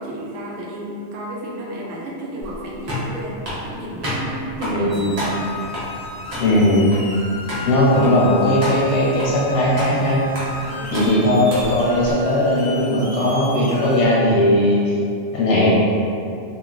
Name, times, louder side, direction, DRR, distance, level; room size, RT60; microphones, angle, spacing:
voice 1, 0.0-5.3 10.6-11.1 15.3-15.4, right 1 dB, 85° right, -4 dB, 0.9 m, -33 dB
sound 1, 2.4-12.1, equal, 40° right, 0.8 m, -31 dB
voice 2, 4.6-5.1 6.4-6.9 7.6-10.2 10.9-14.9 15.3-15.7, left 1 dB, 85° left, -5 dB, 0.9 m, -18 dB
sound 2, 4.9-14.1, left 3 dB, 30° left, 0.4 m, -35 dB
3.0 x 2.4 x 2.4 m, 2.5 s
omnidirectional pair, 1.2 m